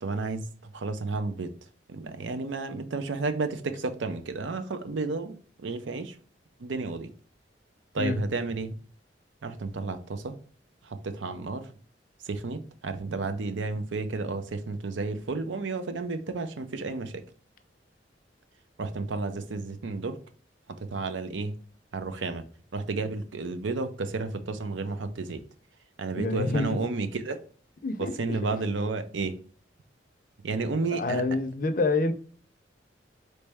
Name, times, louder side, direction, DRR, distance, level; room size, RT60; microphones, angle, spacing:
voice 1, 0.0-0.5 0.7-1.5 1.9-6.1 6.6-7.1 7.9-8.8 9.4-10.4 10.8-11.7 12.2-17.2 18.8-20.2 20.8-21.5 21.9-22.5 22.7-25.4 26.0-27.4 28.0-29.4 30.4-31.2, right 3 dB, 85° right, 0.6 m, -32 dB
voice 2, 26.2-26.8 27.8-28.4 30.9-32.1, left 3 dB, 45° left, 0.5 m, -27 dB
4.1 x 3.3 x 3.4 m
head